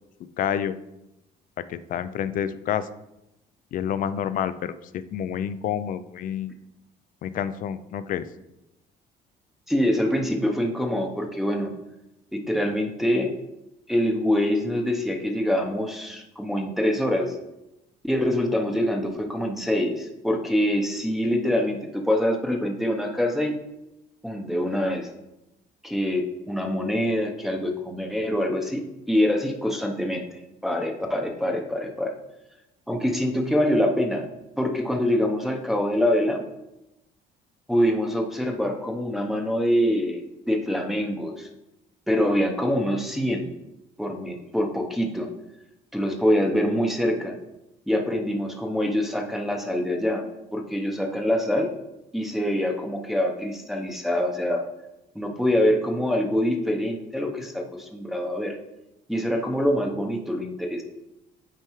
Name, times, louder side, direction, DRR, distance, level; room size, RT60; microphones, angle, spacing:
voice 1, 0.4-0.7 1.6-2.9 3.7-6.5 7.2-8.3, left 9 dB, 55° left, 13 dB, 0.4 m, -28 dB
voice 2, 9.7-11.7 12.3-13.3 13.9-17.3 18.0-23.5 24.2-25.1 25.8-32.2 32.9-34.3 34.6-36.4 37.7-40.2 40.5-41.5 42.1-43.5 44.0-45.3 45.9-47.4 47.9-50.2 50.5-51.7 52.1-54.7 55.1-58.6 59.1-60.8, left 1 dB, ahead, 1 dB, 0.7 m, -25 dB
8.9 x 4.6 x 3.0 m, 0.92 s
cardioid pair, 110°, 17 cm